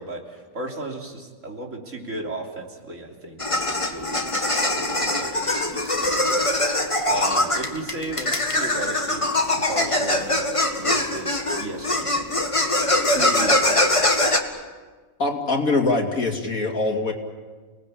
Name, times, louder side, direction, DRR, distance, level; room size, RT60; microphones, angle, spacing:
voice 1, 0.0-9.3 9.5-12.2 13.1-13.9, right 2 dB, 60° right, 0 dB, 3.8 m, -35 dB
sound 1, 3.4-14.4, left 1 dB, 20° left, 1.9 m, -22 dB
voice 2, 15.2-17.1, left 3 dB, 70° left, 2 dB, 3.4 m, -23 dB
29.0 x 19.5 x 8.7 m, 1.4 s
omnidirectional pair, 1.5 m